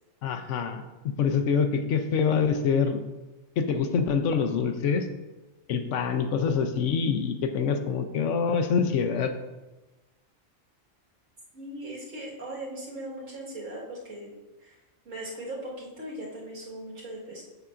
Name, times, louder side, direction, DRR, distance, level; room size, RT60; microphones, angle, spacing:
voice 1, 0.2-3.0 3.6-5.1 5.7-9.3, left 6 dB, 75° left, 7 dB, 0.9 m, -25 dB
voice 2, 11.5-14.3 14.6-14.7 15.1-17.4, right 1 dB, 80° right, -4 dB, 2.0 m, -39 dB
6.9 x 6.6 x 2.5 m, 1.1 s
omnidirectional pair, 1.3 m